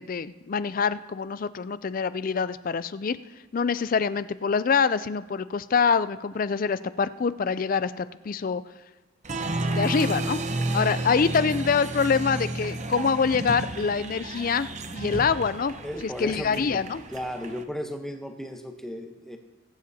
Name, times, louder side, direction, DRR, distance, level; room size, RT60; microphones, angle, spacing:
voice 1, 0.0-3.2 3.5-8.6 9.5-10.4 10.7-15.7 16.2-17.0, left 5 dB, 40° left, 14 dB, 0.4 m, -25 dB
Applause, 9.2-17.6, right 2 dB, 35° right, 0.7 m, -32 dB
voice 2, 15.8-19.4, equal, ahead, 3 dB, 0.9 m, -35 dB
20.5 x 10.5 x 2.8 m, 1.2 s
head